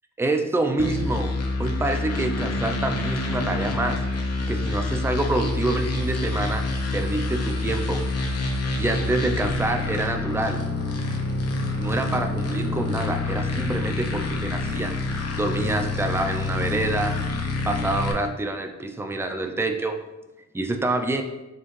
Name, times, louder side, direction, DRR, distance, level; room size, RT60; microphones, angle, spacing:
voice 1, 0.2-4.0 4.5-6.7 6.9-8.0 8.8-10.6 11.8-14.9 15.4-17.2 17.6-20.0 20.5-21.2, right 2 dB, 10° right, 5 dB, 0.3 m, -26 dB
sound 1, 0.8-18.1, left 2 dB, 55° left, 0.8 m, -27 dB
4.4 x 3.4 x 3.1 m, 1.1 s
wide cardioid pair, 115°, 30 cm